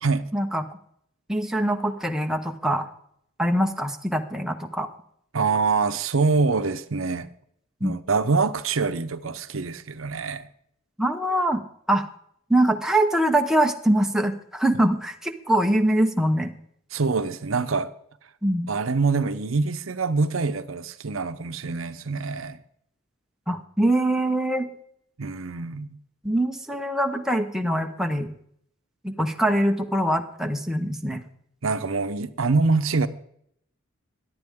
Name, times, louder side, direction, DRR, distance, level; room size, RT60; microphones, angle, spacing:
voice 1, 0.3-0.6 1.3-2.9 3.4-4.9 7.8-7.9 11.0-11.6 11.9-12.0 12.5-16.5 18.4-18.7 23.5-24.7 26.2-28.3 29.0-31.2, right 1 dB, ahead, 1.0 m, -23 dB
voice 2, 5.3-7.3 7.8-10.5 16.9-17.9 18.7-22.6 25.2-26.0 31.6-33.1, right 4 dB, 75° right, 0.8 m, -25 dB
17.5 x 11.5 x 3.6 m
head